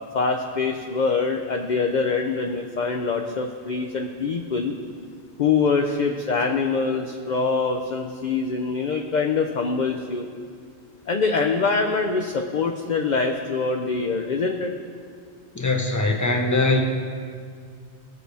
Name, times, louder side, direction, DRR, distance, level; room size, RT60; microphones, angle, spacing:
voice 1, 0.1-4.7 5.4-10.3 11.1-14.7, left 4 dB, 50° left, 4 dB, 0.6 m, -24 dB
voice 2, 15.5-16.8, left 2 dB, 15° left, 2 dB, 0.9 m, -21 dB
18.0 x 6.6 x 3.4 m, 2.1 s
omnidirectional pair, 1.1 m